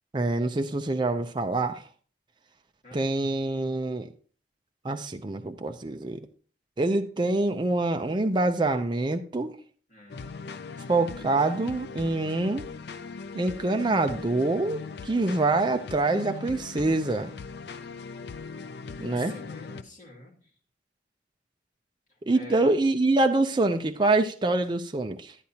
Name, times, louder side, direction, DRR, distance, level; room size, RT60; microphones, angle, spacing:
voice 1, 0.1-1.8 2.9-4.1 4.8-6.3 6.8-9.6 10.9-12.7 13.3-17.3 19.0-19.3 22.2-25.3, right 2 dB, 25° right, 6 dB, 0.5 m, -25 dB
voice 2, 9.9-10.3 19.2-20.5 22.3-22.8, left 2 dB, 45° left, -3 dB, 2.3 m, -47 dB
sound 1, 10.1-19.8, left 4 dB, 65° left, 0.5 m, -40 dB
10.5 x 9.9 x 2.8 m, 0.42 s
head